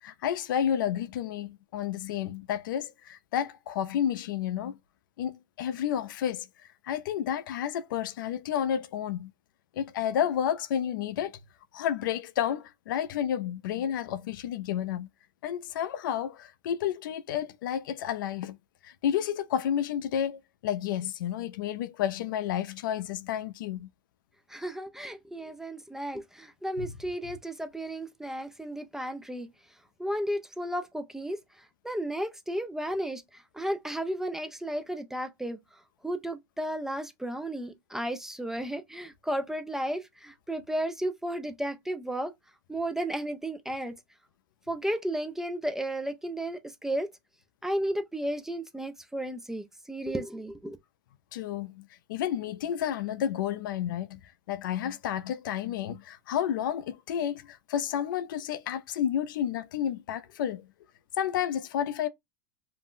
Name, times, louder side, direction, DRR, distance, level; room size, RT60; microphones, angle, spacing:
voice 1, 0.0-4.8 5.2-6.5 6.8-9.3 9.7-11.4 11.7-15.1 15.4-18.6 18.8-23.9 26.8-26.9 51.3-54.2 54.5-60.6 61.2-62.1, left 10 dB, 85° left, 0.4 m, -31 dB
voice 2, 24.5-29.5 30.0-31.4 31.8-35.6 36.0-42.3 42.7-43.9 44.7-47.1 47.6-50.8, right 1 dB, 5° right, 0.3 m, -33 dB
2.5 x 2.0 x 3.5 m
supercardioid pair, 125°, 11 cm